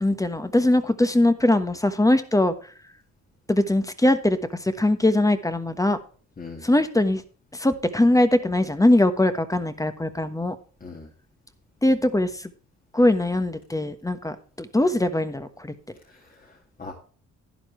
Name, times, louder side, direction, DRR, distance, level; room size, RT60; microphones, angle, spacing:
voice 1, 0.0-2.5 3.5-6.0 6.6-7.2 7.5-10.6 11.8-12.5 12.9-15.7, left 1 dB, 10° left, 10 dB, 1.2 m, -21 dB
voice 2, 6.4-6.7 10.8-11.1 16.1-16.9, left 4 dB, 30° left, 2 dB, 2.1 m, -41 dB
11.5 x 10.0 x 3.2 m, 0.41 s
cardioid pair, 90°, 30 cm